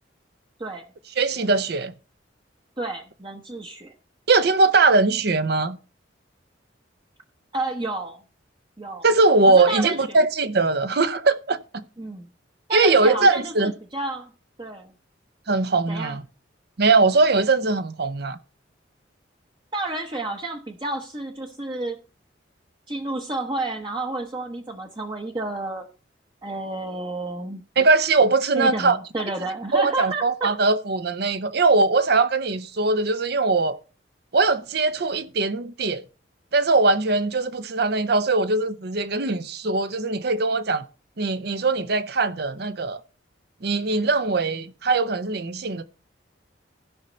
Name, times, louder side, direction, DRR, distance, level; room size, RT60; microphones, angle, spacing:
voice 1, 1.2-1.9 4.3-5.8 9.0-11.8 12.7-13.7 15.5-16.2 16.8-18.4 27.8-29.0 29.7-33.8 34.3-36.0 36.5-40.8 41.2-43.0 43.6-45.8, right 3 dB, 55° right, 0.7 m, -21 dB
voice 2, 2.8-3.9 7.5-8.2 8.8-9.1 9.5-10.2 12.0-12.3 12.7-14.3 14.6-14.9 15.9-16.2 19.7-22.0 22.9-25.9 26.4-27.6 28.6-30.5, right 2 dB, 25° right, 0.8 m, -30 dB
16.0 x 5.6 x 3.9 m
head